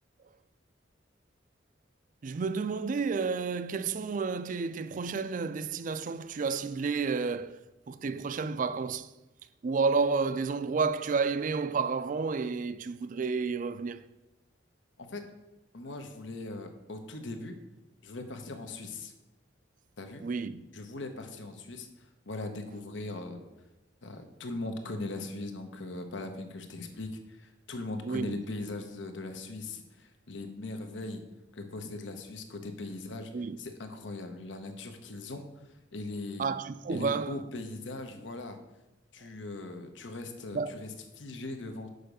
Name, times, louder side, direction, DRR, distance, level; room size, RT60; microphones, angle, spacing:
voice 1, 2.2-7.6 7.9-9.1 9.6-14.0 20.2-20.6 28.0-28.3 33.3-33.6 36.4-37.4 40.5-40.7, right 4 dB, 45° right, 0.4 m, -31 dB
voice 2, 15.7-17.6 18.0-19.1 20.0-20.2 20.7-23.4 24.0-31.2 31.5-33.3 33.6-35.5 35.9-36.5 36.9-38.6 39.1-41.9, left 2 dB, 85° left, 1.0 m, -40 dB
6.6 x 5.1 x 6.7 m
head